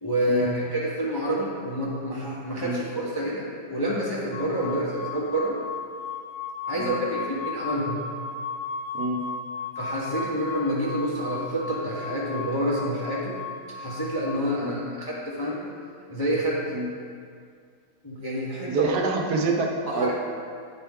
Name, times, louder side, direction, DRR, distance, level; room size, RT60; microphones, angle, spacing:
voice 1, 0.0-5.6 6.7-8.1 9.7-13.4 13.8-15.7 16.1-16.8 18.0-18.9 19.9-20.1, right 1 dB, 25° left, -6 dB, 0.5 m, -28 dB
sound 1, 4.3-14.4, left 4 dB, 80° left, 1.2 m, -35 dB
voice 2, 18.7-20.1, right 3 dB, 75° right, 2 dB, 1.2 m, -27 dB
8.5 x 4.4 x 3.5 m, 2.1 s
omnidirectional pair, 1.8 m